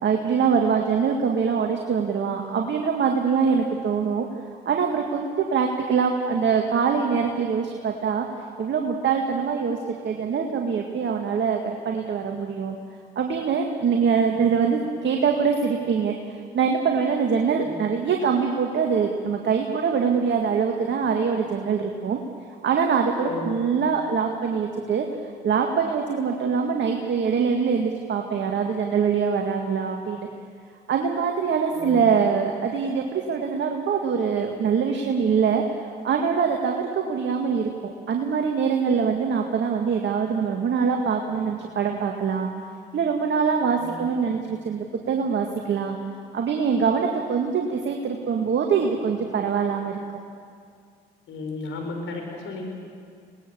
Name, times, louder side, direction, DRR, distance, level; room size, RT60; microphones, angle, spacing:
voice 1, 0.0-4.3 4.7-8.3 8.6-9.8 10.0-12.8 13.2-16.1 16.5-22.2 22.6-25.1 25.4-30.3 30.9-35.6 36.0-42.5 42.9-46.0 46.3-50.0, right 6 dB, 60° right, 2 dB, 2.0 m, -23 dB
voice 2, 23.2-23.5 31.7-32.1 43.7-44.1 51.3-52.6, left 3 dB, 70° left, 1 dB, 5.8 m, -34 dB
25.0 x 19.5 x 7.1 m, 2.2 s
supercardioid pair, 55°, 21 cm